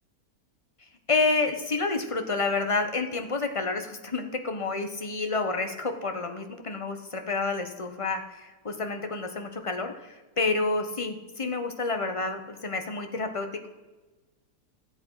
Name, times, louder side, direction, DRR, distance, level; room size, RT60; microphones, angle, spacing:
voice 1, 1.1-8.2 8.6-13.7, left 3 dB, 25° left, 6 dB, 1.0 m, -29 dB
14.0 x 7.7 x 5.7 m, 1.2 s
omnidirectional pair, 1.7 m